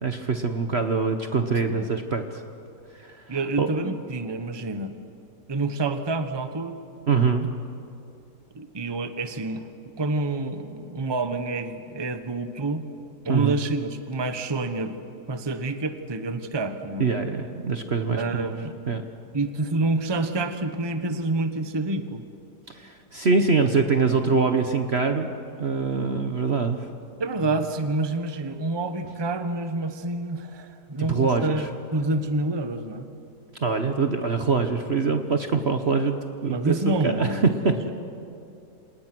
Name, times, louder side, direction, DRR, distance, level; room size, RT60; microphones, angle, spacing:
voice 1, 0.0-2.4 2.9-3.7 7.1-7.5 13.3-13.6 17.0-18.5 18.9-19.0 22.7-25.3 25.6-26.9 31.1-31.6 33.6-37.4 37.6-37.7, right 4 dB, 45° right, 6 dB, 1.2 m, -24 dB
voice 2, 3.3-4.9 5.5-6.8 8.5-12.9 13.2-15.0 15.3-17.1 18.2-18.8 19.3-22.2 27.2-31.7 31.9-33.1 36.5-37.9, right 2 dB, 15° right, 8 dB, 1.0 m, -28 dB
28.0 x 27.5 x 6.2 m, 2.6 s
omnidirectional pair, 1.8 m